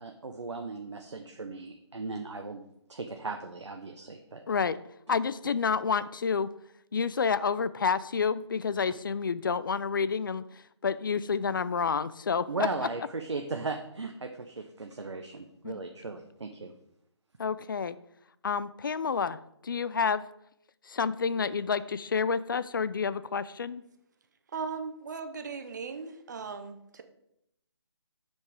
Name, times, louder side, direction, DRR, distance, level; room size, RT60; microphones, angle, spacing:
voice 1, 0.0-2.6 2.9-4.4 12.5-16.7, right 3 dB, 75° right, 4 dB, 0.8 m, -37 dB
voice 2, 4.5-4.8 5.1-6.5 6.9-10.5 10.8-12.7 15.6-15.7 17.4-18.0 18.4-20.2 20.9-23.8, left 5 dB, 45° left, 16 dB, 0.4 m, -29 dB
voice 3, 24.5-27.0, right 5 dB, 40° right, 8 dB, 0.7 m, -38 dB
6.7 x 5.2 x 4.7 m, 0.78 s
figure-of-eight pair, 155°, 15 cm